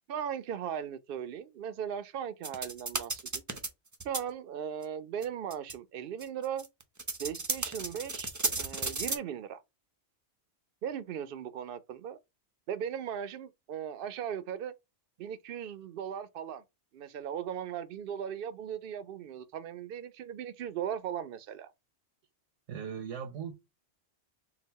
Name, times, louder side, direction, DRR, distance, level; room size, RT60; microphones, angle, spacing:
voice 1, 0.1-3.4 4.0-6.7 7.2-9.6 10.8-12.2 12.7-14.7 15.2-16.6 16.9-21.7, right 9 dB, 60° right, 0.6 m, -38 dB
sound 1, 2.4-3.7 3.9-4.2 4.8-4.9 5.2-5.3 5.5-5.7 6.2-9.2, right 3 dB, 25° right, 0.4 m, -33 dB
voice 2, 22.7-23.5, right 7 dB, 85° right, 1.0 m, -38 dB
3.9 x 2.3 x 4.0 m
omnidirectional pair, 1.2 m